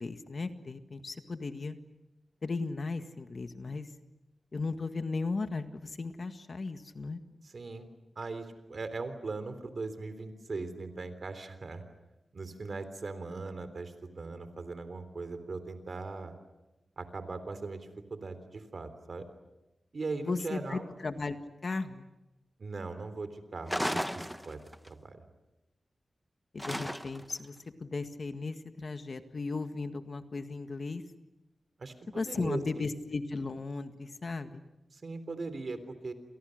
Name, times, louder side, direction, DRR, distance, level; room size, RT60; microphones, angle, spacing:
voice 1, 0.0-1.8 2.4-3.9 4.5-7.2 20.2-21.4 21.6-22.1 26.5-27.5 27.8-31.0 32.2-34.6, left 3 dB, 50° left, 8 dB, 1.8 m, -36 dB
voice 2, 7.4-7.9 8.2-11.8 12.3-16.3 17.0-19.3 19.9-20.9 22.6-24.6 24.9-25.2 31.8-32.8 34.9-36.1, right 3 dB, 55° right, 10 dB, 3.6 m, -39 dB
sound 1, 23.7-24.9 26.6-27.4, equal, ahead, 0.9 m, -34 dB
30.0 x 27.5 x 6.6 m, 0.99 s
wide cardioid pair, 105°, 0 cm